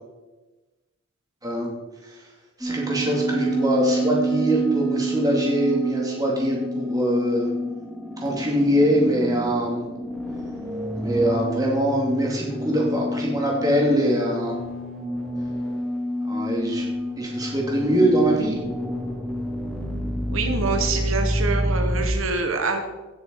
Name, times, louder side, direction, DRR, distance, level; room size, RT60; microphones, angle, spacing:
sound 1, 2.6-22.1, right 1 dB, 5° left, 1.2 m, -28 dB
voice 1, 2.6-7.5 8.2-9.8 11.0-14.6 16.2-16.9 17.2-18.6, equal, 15° right, -2 dB, 2.7 m, -23 dB
voice 2, 20.3-22.8, right 4 dB, 80° right, 5 dB, 1.3 m, -25 dB
16.5 x 6.9 x 4.7 m, 1.1 s
head